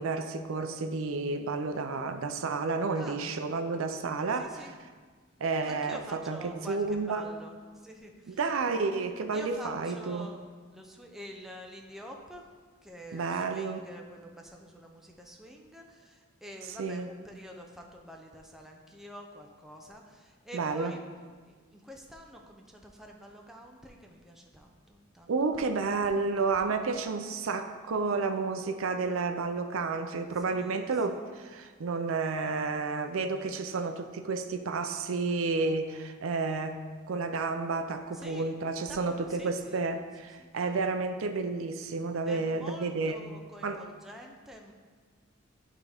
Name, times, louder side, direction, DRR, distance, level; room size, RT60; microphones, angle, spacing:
voice 1, 0.0-4.5 5.4-7.2 8.3-10.3 13.1-13.8 16.8-17.1 20.5-20.9 25.3-36.8 37.1-43.2 43.6-43.8, right 4 dB, 75° right, 7 dB, 0.5 m, -31 dB
voice 2, 4.3-4.7 5.7-8.4 9.3-10.4 10.7-12.5 12.8-21.0 21.4-26.3 26.5-27.2 30.4-31.3 38.1-38.6 38.9-39.9 40.4-40.5 42.3-44.7, equal, ahead, 0 dB, 0.5 m, -47 dB
10.5 x 3.6 x 3.4 m, 1.5 s
head